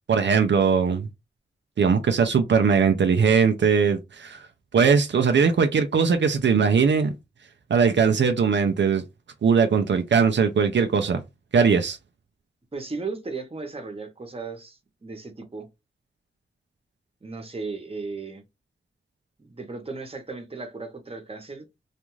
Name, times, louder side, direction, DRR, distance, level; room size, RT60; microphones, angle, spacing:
voice 1, 0.1-1.1 1.8-4.4 4.7-7.1 7.7-9.0 9.4-11.2 11.5-12.0, right 6 dB, 80° right, 0.4 m, -20 dB
voice 2, 12.7-15.7 17.2-18.4 19.4-21.6, right 4 dB, 30° right, 0.9 m, -36 dB
2.5 x 2.3 x 3.0 m
wide cardioid pair, 70°, 18 cm